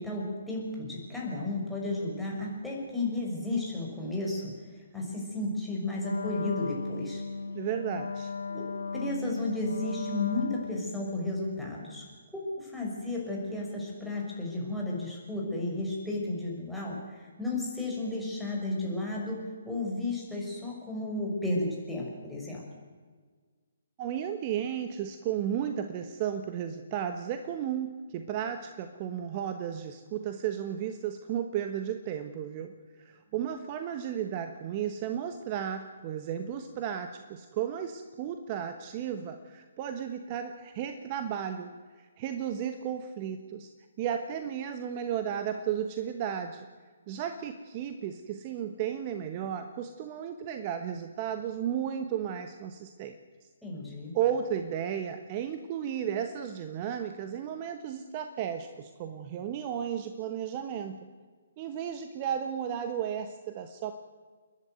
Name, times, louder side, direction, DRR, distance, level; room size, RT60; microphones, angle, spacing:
voice 1, 0.0-7.2 8.5-12.1 12.3-22.6 53.6-54.1, left 2 dB, ahead, -4 dB, 6.1 m, -33 dB
Wind instrument woodwind instrument, 6.0-11.1, left 3 dB, 70° left, 0.8 m, -36 dB
voice 2, 7.5-8.3 24.0-32.7 33.0-41.7 42.0-43.7 44.0-46.7 47.1-53.1 54.1-61.0 61.6-63.9, right 9 dB, 30° right, 8 dB, 1.3 m, -34 dB
29.5 x 11.0 x 9.3 m, 1.5 s
figure-of-eight pair, 135°, 0 cm